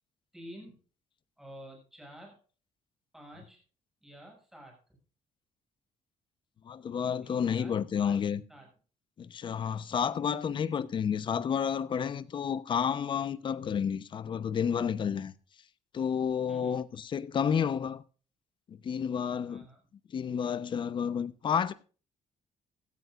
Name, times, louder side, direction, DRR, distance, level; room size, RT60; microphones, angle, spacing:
voice 1, 0.3-0.8 1.4-2.4 3.1-3.6 4.0-4.8 7.2-8.7 16.5-16.8 19.5-19.8, equal, 5° right, 7.1 m, -50 dB
voice 2, 6.6-8.4 9.2-15.3 15.9-18.0 18.7-19.7 20.1-21.7, left 7 dB, 40° left, 0.9 m, -30 dB
17.0 x 14.0 x 2.5 m
cardioid pair, 145°, 13 cm